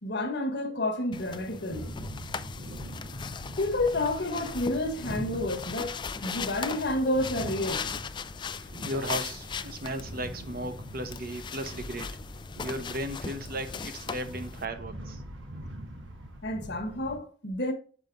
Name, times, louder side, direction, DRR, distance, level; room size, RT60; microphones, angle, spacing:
voice 1, 0.0-1.9 3.6-7.9 16.4-17.7, left 1 dB, 60° left, 1.2 m, -30 dB
sound 1, 1.1-14.7, left 5 dB, 25° left, 0.3 m, -39 dB
sound 2, 1.7-17.2, equal, 90° right, 1.3 m, -43 dB
voice 2, 8.8-12.2 12.6-15.2, right 1 dB, 50° right, 0.8 m, -36 dB
7.2 x 5.3 x 2.5 m
head